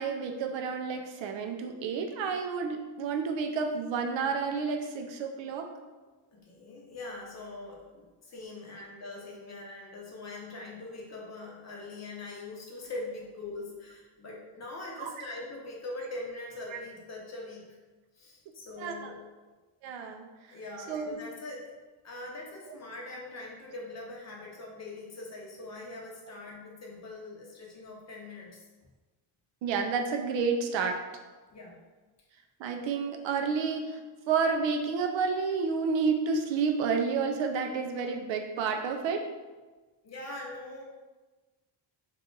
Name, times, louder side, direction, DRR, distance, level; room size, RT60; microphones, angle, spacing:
voice 1, 0.0-5.7 15.0-15.1 16.7-16.8 18.8-19.1 19.8-20.3 20.9-21.2 22.7-22.8 29.6-31.0 32.6-34.0 34.3-39.3, right 5 dB, 75° right, 4 dB, 0.5 m, -30 dB
voice 2, 6.3-17.6 18.1-19.2 20.5-21.7 22.0-28.6 31.5-31.8 40.0-40.8, left 2 dB, 35° left, -2 dB, 0.7 m, -42 dB
2.9 x 2.4 x 3.7 m, 1.2 s
cardioid pair, 145°, 46 cm